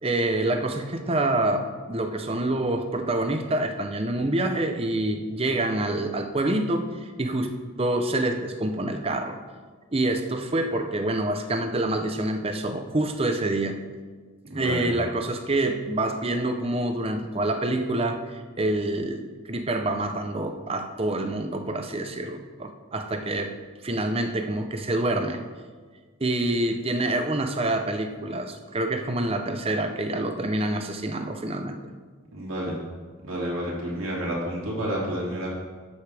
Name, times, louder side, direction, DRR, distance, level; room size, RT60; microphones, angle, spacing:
voice 1, 0.0-9.4 9.9-13.8 14.5-23.6 23.8-25.4 26.2-31.8, right 1 dB, 30° right, 6 dB, 0.7 m, -27 dB
voice 2, 14.5-14.9 32.3-32.8 33.2-35.5, equal, 85° right, -4 dB, 2.9 m, -30 dB
11.0 x 8.2 x 3.4 m, 1.5 s
head